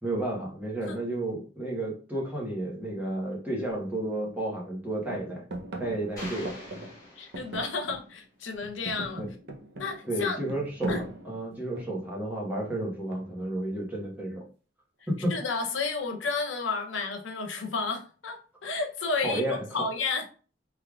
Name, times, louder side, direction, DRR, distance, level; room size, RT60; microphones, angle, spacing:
voice 1, 0.0-5.5 5.8-6.5 9.2-9.3 10.1-10.9 11.2-14.4 15.1-15.3 19.2-19.9, right 1 dB, 10° right, 1.2 m, -32 dB
sound 1, 3.7-3.8 4.2-4.8 5.1-8.2 8.5-12.1 13.1-13.6, right 1 dB, 65° right, 0.7 m, -39 dB
sound 2, 6.2-7.9, left 1 dB, 20° left, 1.1 m, -45 dB
voice 2, 7.2-9.2 9.8-10.4 10.9-11.0 15.3-20.3, left 4 dB, 75° left, 0.7 m, -32 dB
3.5 x 3.3 x 2.3 m
head